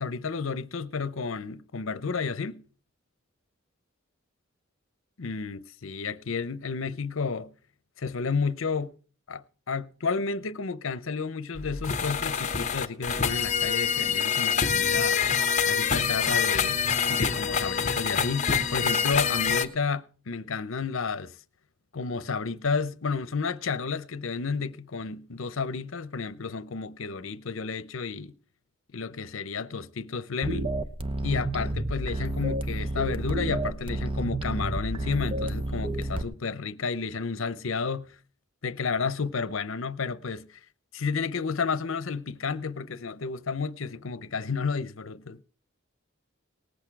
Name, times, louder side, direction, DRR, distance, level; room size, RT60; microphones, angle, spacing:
voice 1, 0.0-2.6 5.2-7.5 8.0-8.9 9.3-15.2 15.7-16.8 17.1-21.3 21.9-28.3 28.9-30.7 31.2-38.1 38.6-40.5 40.9-45.4, left 5 dB, 75° left, 0.7 m, -31 dB
sound 1, 11.6-19.7, left 6 dB, 35° left, 0.9 m, -26 dB
sound 2, 30.4-36.2, right 1 dB, 25° right, 0.8 m, -30 dB
19.0 x 8.1 x 4.7 m
head